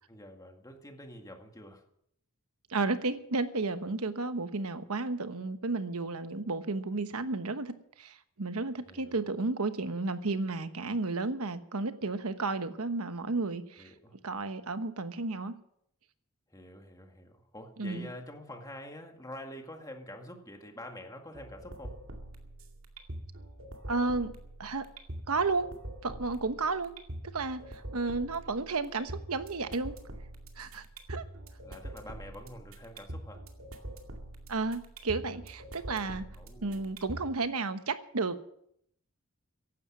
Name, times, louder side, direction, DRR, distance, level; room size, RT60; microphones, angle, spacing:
voice 1, 0.1-1.8 8.9-9.2 13.8-14.2 16.5-22.0 31.6-33.4 36.4-36.9, left 1 dB, 15° left, 4 dB, 1.9 m, -47 dB
voice 2, 2.7-13.9 14.2-15.5 17.8-18.1 23.9-24.3 24.6-24.9 25.3-25.7 26.0-26.9 27.2-29.9 30.6-31.2 34.5-36.3 36.6-38.5, right 3 dB, 85° right, 10 dB, 1.1 m, -32 dB
sound 1, 21.3-37.3, right 1 dB, 65° right, 2.3 m, -45 dB
15.0 x 11.5 x 6.0 m, 0.71 s
head